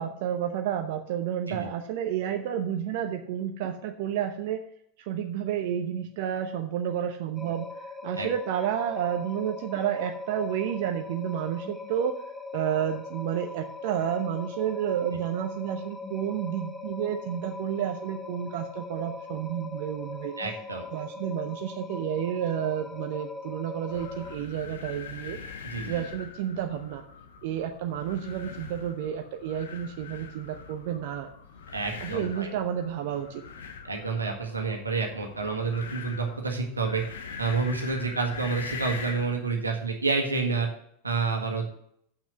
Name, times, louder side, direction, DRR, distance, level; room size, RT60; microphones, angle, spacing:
voice 1, 0.0-4.6 5.1-7.6 8.0-12.1 12.5-20.3 20.9-25.4 25.9-27.0 27.4-31.3 32.0-33.4, right 9 dB, 60° right, 6 dB, 0.8 m, -30 dB
sound 1, 7.3-24.4, left 3 dB, 15° left, 1.3 m, -40 dB
voice 2, 20.4-20.8 25.6-26.0 31.7-32.5 33.8-37.0 37.4-40.7 41.0-41.7, right 4 dB, 90° right, 3 dB, 1.7 m, -29 dB
sound 2, 23.9-39.4, left 5 dB, 70° left, 1.1 m, -43 dB
7.7 x 6.0 x 7.0 m, 0.70 s
figure-of-eight pair, 90°, 0 cm